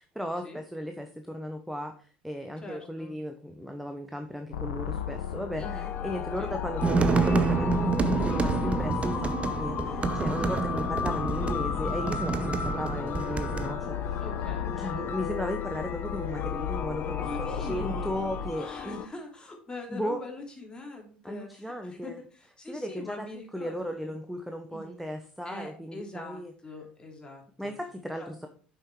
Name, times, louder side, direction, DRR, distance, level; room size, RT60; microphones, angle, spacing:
voice 1, 0.0-14.2 14.7-19.0 19.9-20.2 21.2-22.2 22.7-26.5 27.6-28.5, equal, ahead, 6 dB, 0.9 m, -36 dB
voice 2, 2.6-3.1 5.6-5.9 6.4-6.5 10.4-10.6 14.2-15.1 17.2-18.1 18.5-24.1 24.7-25.0 25.4-27.7 28.2-28.5, left 2 dB, 15° left, 1 dB, 3.1 m, -43 dB
sound 1, 4.5-18.5, left 7 dB, 75° left, 1.0 m, -36 dB
sound 2, 5.6-19.1, left 8 dB, 40° left, 0.9 m, -36 dB
sound 3, 6.8-13.7, right 4 dB, 25° right, 0.9 m, -28 dB
7.8 x 5.7 x 4.7 m, 0.43 s
figure-of-eight pair, 70°, 5 cm